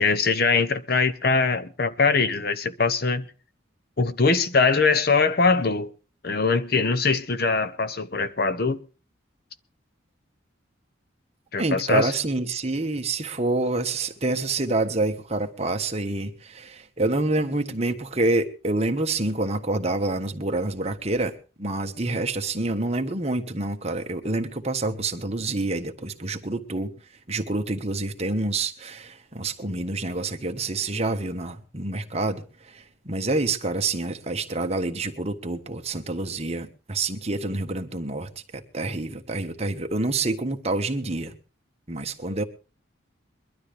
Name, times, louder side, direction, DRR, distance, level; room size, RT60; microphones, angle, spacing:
voice 1, 0.0-3.2 4.0-5.9 6.2-8.8 11.5-12.1 22.1-22.3, left 4 dB, 50° left, 0.9 m, -22 dB
voice 2, 11.6-21.3 21.6-26.9 27.3-32.4 33.0-41.3 41.9-42.4, right 2 dB, 30° right, 1.3 m, -27 dB
22.5 x 12.5 x 3.3 m
head